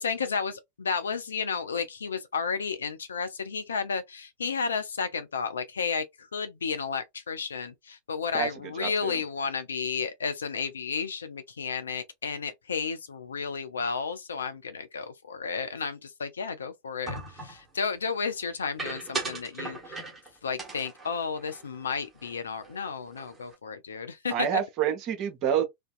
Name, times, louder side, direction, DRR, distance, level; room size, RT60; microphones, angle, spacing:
voice 1, 0.0-20.0 20.4-24.5, left 5 dB, 70° left, 0.4 m, -32 dB
voice 2, 8.8-9.2 24.3-25.6, right 9 dB, 40° right, 0.8 m, -28 dB
sound 1, 17.1-17.6 18.8-20.3 20.6-22.3 22.6-22.8 23.1-23.5, right 3 dB, 15° right, 1.1 m, -38 dB
2.6 x 2.2 x 2.4 m
figure-of-eight pair, 90°, 0 cm